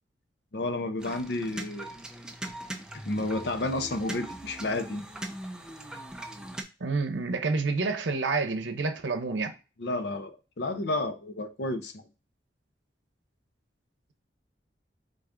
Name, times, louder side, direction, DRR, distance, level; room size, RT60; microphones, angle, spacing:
voice 1, 0.5-1.9 3.0-5.0 9.8-12.0, left 2 dB, 65° left, 0.6 m, -31 dB
Failing Hard Drives (Glyphx) in Time cyclical, 1.0-6.6, right 1 dB, 5° right, 0.4 m, -40 dB
voice 2, 6.8-9.5, right 3 dB, 85° right, 0.7 m, -28 dB
3.7 x 3.6 x 3.7 m
head